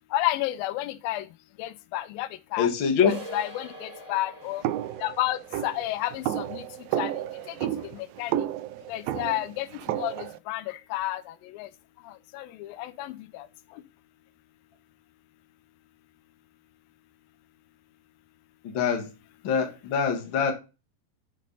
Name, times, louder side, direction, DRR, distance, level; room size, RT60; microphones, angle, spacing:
voice 1, 0.1-1.3 1.6-2.7 3.0-4.6 5.0-6.6 7.0-7.1 7.5-7.6 7.8-8.4 8.9-11.7 12.1-13.5, left 15 dB, 85° left, 2.4 m, -31 dB
voice 2, 2.6-3.1 18.6-19.1 19.4-20.5, left 7 dB, 45° left, 1.7 m, -24 dB
sound 1, 3.0-8.5, equal, 20° right, 1.1 m, -44 dB
sound 2, 4.6-10.4, right 12 dB, 85° right, 2.3 m, -32 dB
6.6 x 6.6 x 5.3 m
omnidirectional pair, 4.1 m